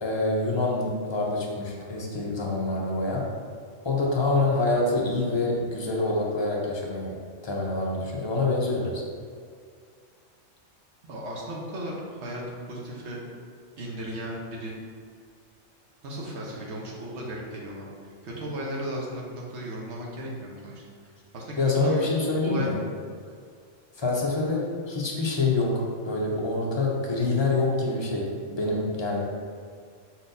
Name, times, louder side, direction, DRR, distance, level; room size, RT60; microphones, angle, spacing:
voice 1, 0.0-3.3 3.8-7.1 7.4-9.0 21.6-22.8 24.0-29.2, left 2 dB, 35° left, -3 dB, 0.5 m, -26 dB
voice 2, 11.1-12.4 12.7-13.2 13.8-14.8 16.0-22.1 22.4-22.7, right 1 dB, 65° right, -3 dB, 1.2 m, -36 dB
4.6 x 4.0 x 2.6 m, 2.1 s
omnidirectional pair, 1.3 m